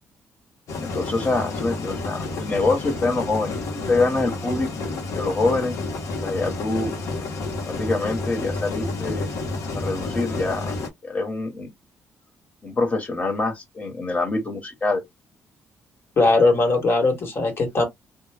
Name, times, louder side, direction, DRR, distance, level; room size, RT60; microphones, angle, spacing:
sound 1, 0.7-10.9, left 3 dB, 75° left, 0.9 m, -30 dB
voice 1, 0.8-4.7 5.1-5.8 6.2-6.9 7.7-9.3 9.7-10.8 11.0-11.7 12.6-15.0, left 3 dB, 25° left, 1.2 m, -25 dB
voice 2, 16.2-17.8, left 3 dB, 50° left, 1.4 m, -19 dB
2.2 x 2.1 x 3.4 m
cardioid pair, 90°, 5 cm